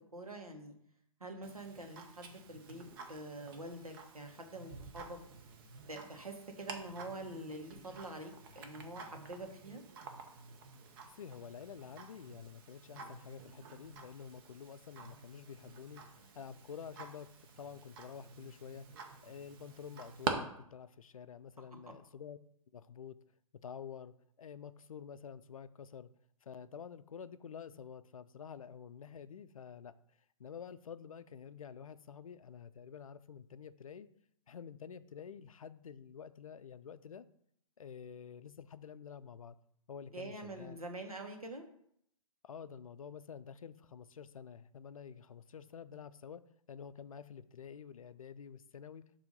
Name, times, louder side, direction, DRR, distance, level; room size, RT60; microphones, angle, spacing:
voice 1, 0.1-0.7 1.2-5.2 5.9-9.8 40.1-41.7, right 1 dB, 85° right, 4 dB, 1.2 m, -46 dB
Tick-tock, 1.4-20.3, right 5 dB, 40° right, 0.8 m, -48 dB
voice 2, 11.2-16.0 16.3-22.4 22.7-23.2 23.6-26.1 26.4-29.9 30.4-34.1 34.5-37.3 37.8-39.6 39.9-40.8 42.4-49.0, left 7 dB, 70° left, 14 dB, 0.4 m, -49 dB
6.9 x 2.8 x 5.3 m, 0.71 s
figure-of-eight pair, 115°, 18 cm